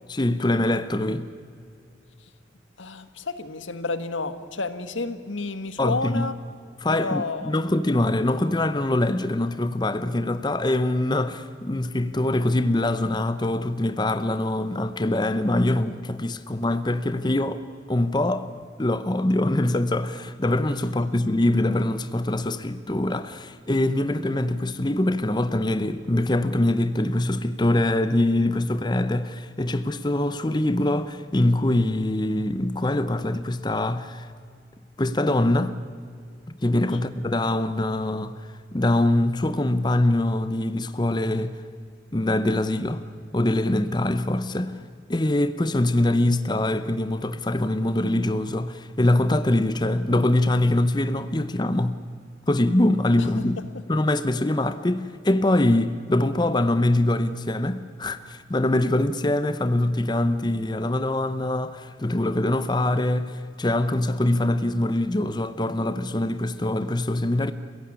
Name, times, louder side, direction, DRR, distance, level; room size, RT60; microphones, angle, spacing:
voice 1, 0.1-1.3 5.8-6.3 6.8-17.6 17.9-18.5 18.8-34.3 35.0-35.7 36.6-41.6 42.1-43.0 43.3-44.8 45.1-52.0 52.5-53.6 53.9-67.5, left 1 dB, 20° left, 0.7 m, -23 dB
voice 2, 2.8-6.3 6.9-7.5 36.9-37.0 53.2-53.3, left 3 dB, 85° left, 1.6 m, -30 dB
28.5 x 16.0 x 9.8 m
head